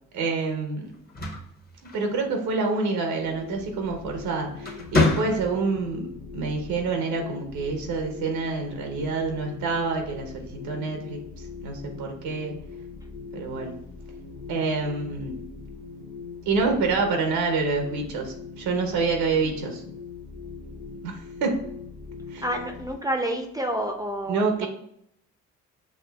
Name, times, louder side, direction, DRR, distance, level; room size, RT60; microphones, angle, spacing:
voice 1, 0.1-0.9 1.9-6.1 6.3-11.2 11.6-12.6 13.3-13.8 14.5-15.4 16.5-19.8 21.0-21.6 22.3-22.5 24.3-24.7, right 4 dB, 80° right, 3 dB, 0.8 m, -27 dB
sound 1, 0.9-2.5 3.9-4.2 4.6-5.8, left 3 dB, 25° left, 0.9 m, -26 dB
sound 2, 3.2-22.9, left 4 dB, 90° left, 0.7 m, -41 dB
voice 2, 22.4-24.7, right 1 dB, 10° right, 3 dB, 0.5 m, -29 dB
5.8 x 2.4 x 2.3 m, 0.72 s
supercardioid pair, 65°, 36 cm